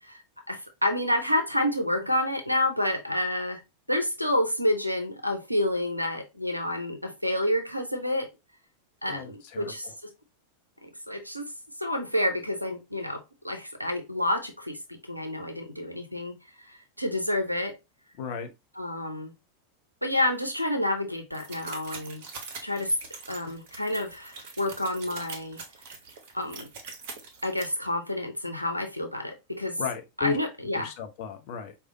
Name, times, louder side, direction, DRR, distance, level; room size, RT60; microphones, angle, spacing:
voice 1, 0.0-3.6 3.9-8.3 9.0-10.1 10.8-11.5 11.8-17.7 18.8-19.3 20.0-22.2 22.6-22.9 23.3-25.6 26.3-26.7 27.4-29.8 30.2-30.9, left 1 dB, 90° right, 0.6 m, -29 dB
voice 2, 9.1-9.9 18.2-18.5 29.8-30.4 30.7-31.8, left 8 dB, 45° left, 0.7 m, -35 dB
sound 1, 21.3-27.6, right 4 dB, 50° right, 1.0 m, -43 dB
4.8 x 2.3 x 2.6 m
figure-of-eight pair, 90°, 0 cm